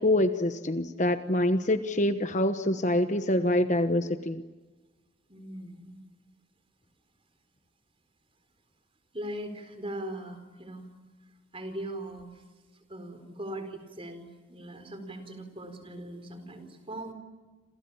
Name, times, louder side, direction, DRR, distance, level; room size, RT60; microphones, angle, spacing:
voice 1, 0.0-4.4, left 1 dB, 35° left, 9 dB, 1.1 m, -25 dB
voice 2, 5.3-6.0 9.1-10.9 11.5-12.3 12.9-17.1, right 1 dB, 25° right, 8 dB, 4.4 m, -40 dB
29.0 x 27.5 x 7.3 m, 1.3 s
head